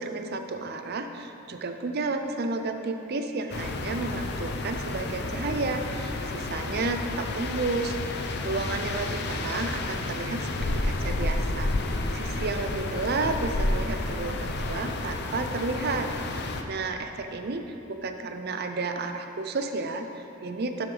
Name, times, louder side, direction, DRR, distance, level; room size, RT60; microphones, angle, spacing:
voice 1, 0.0-10.5 10.8-11.7 12.1-20.9, right 3 dB, 50° right, 6 dB, 0.6 m, -32 dB
sound 1, 3.5-16.6, left 2 dB, 55° left, 0.6 m, -31 dB
12.0 x 7.0 x 3.4 m, 2.9 s
head